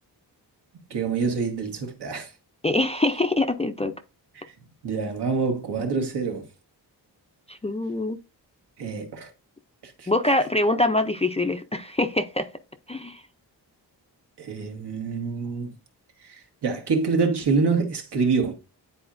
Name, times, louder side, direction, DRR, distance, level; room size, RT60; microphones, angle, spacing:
voice 1, 0.9-2.3 4.4-4.5 4.8-6.5 8.8-9.3 9.8-10.1 14.4-15.7 16.3-18.5, right 4 dB, 80° right, 1.4 m, -26 dB
voice 2, 2.6-3.9 7.5-8.2 10.1-12.5 12.9-13.2, left 2 dB, 15° left, 0.3 m, -24 dB
9.8 x 4.2 x 2.5 m
wide cardioid pair, 170°, 41 cm